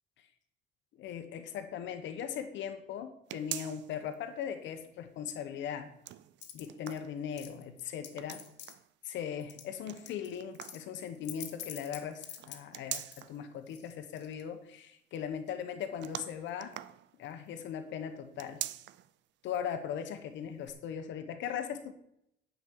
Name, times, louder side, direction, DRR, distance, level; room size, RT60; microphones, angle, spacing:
voice 1, 1.0-5.9 6.5-8.4 9.0-16.8 17.2-18.6 19.4-21.9, left 8 dB, 85° left, 7 dB, 1.1 m, -39 dB
sound 1, 3.3-4.1 4.6-4.7 5.8-7.6 8.1-8.9 9.9-10.9 12.4-13.4 16.0-17.5 18.3-19.1 19.5-19.6 20.6-20.7, right 14 dB, 75° right, 0.5 m, -43 dB
sound 2, 6.4-7.0 7.4-8.7 9.4-9.7 10.1-13.2 13.7-14.4, left 10 dB, 70° left, 1.5 m, -46 dB
9.6 x 5.2 x 7.8 m, 0.75 s
cardioid pair, 175°, 19 cm